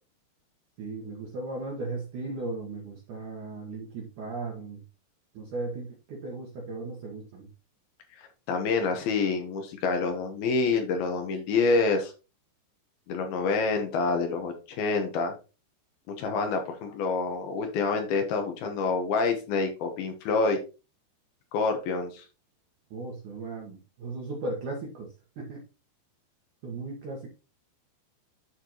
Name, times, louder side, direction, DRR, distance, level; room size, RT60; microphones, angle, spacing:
voice 1, 0.8-4.8 5.3-7.5 22.9-25.6 26.6-27.3, right 3 dB, 80° right, -1 dB, 1.8 m, -36 dB
voice 2, 8.5-12.1 13.1-15.3 16.1-20.6 21.5-22.2, left 4 dB, 70° left, 5 dB, 2.3 m, -27 dB
12.0 x 4.3 x 3.0 m, 0.31 s
omnidirectional pair, 5.7 m